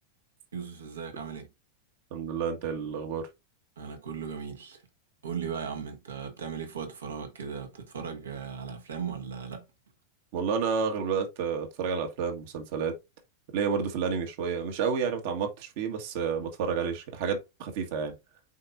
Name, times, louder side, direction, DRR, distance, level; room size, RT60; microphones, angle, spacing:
voice 1, 0.5-1.5 3.8-4.8 5.2-9.6, right 6 dB, 70° right, 1.7 m, -37 dB
voice 2, 2.1-3.3 10.3-13.0 13.5-18.1, right 6 dB, 50° right, 1.6 m, -30 dB
8.1 x 4.5 x 2.6 m
figure-of-eight pair, 90°, 0 cm